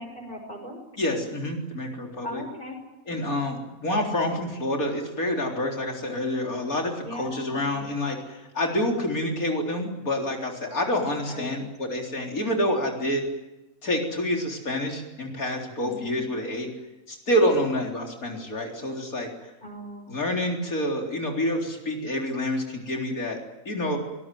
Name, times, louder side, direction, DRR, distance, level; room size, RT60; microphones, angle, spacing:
voice 1, 0.0-0.8 2.2-2.8 3.2-3.6 7.0-7.9 11.3-11.6 15.8-16.3 19.6-20.2, equal, 35° left, 3 dB, 6.1 m, -39 dB
voice 2, 1.0-2.4 3.1-13.2 13.8-16.7 17.1-19.3 20.1-23.4 23.7-24.0, left 1 dB, 85° left, 1 dB, 4.4 m, -27 dB
24.5 x 19.0 x 9.4 m, 0.99 s
omnidirectional pair, 1.5 m